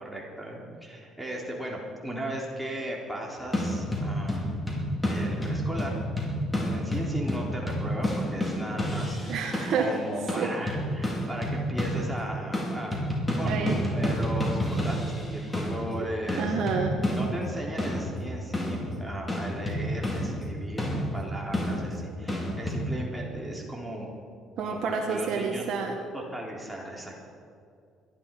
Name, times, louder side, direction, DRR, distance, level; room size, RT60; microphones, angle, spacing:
voice 1, 0.0-4.7 5.1-5.9 6.6-9.5 9.7-16.6 16.9-24.1 24.6-25.6 26.1-27.2, right 1 dB, 5° right, -3 dB, 3.8 m, -37 dB
sound 1, 3.5-9.9 10.3-12.2 12.5-22.8, equal, 20° left, 5.3 m, -30 dB
voice 2, 9.3-9.9 10.4-10.5 13.5-13.8 16.0-16.1 16.4-17.0 24.6-26.0, right 5 dB, 65° right, 2 dB, 1.6 m, -29 dB
21.5 x 12.5 x 5.5 m, 2.3 s
hypercardioid pair, 60°, 0 cm